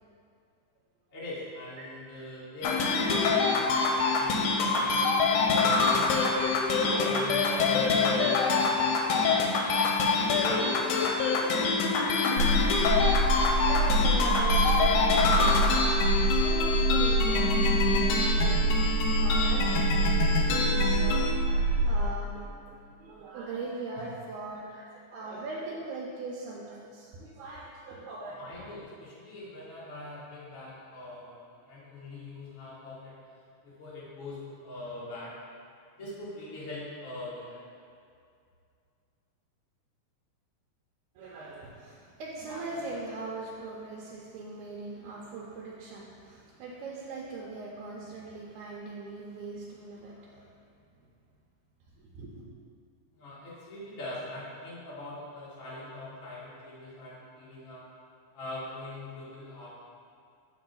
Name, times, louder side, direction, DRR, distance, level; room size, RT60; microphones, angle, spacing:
voice 1, 1.1-6.6 7.0-10.8 28.3-33.2 33.6-35.3 36.0-37.6 53.1-57.8 58.3-59.7, left 2 dB, 45° left, -9 dB, 1.0 m, -42 dB
sound 1, 2.6-21.3, left 4 dB, 85° left, 2.1 m, -26 dB
voice 2, 4.7-5.3 5.8-5.9 6.8-7.6 9.8-11.9 12.3-13.1 13.6-28.4 41.2-50.5 52.0-52.5, right 3 dB, 80° right, -4 dB, 2.0 m, -41 dB
sound 2, 12.4-22.1, right 2 dB, 65° left, 1.7 m, -26 dB
7.1 x 4.7 x 3.8 m, 2.3 s
omnidirectional pair, 3.6 m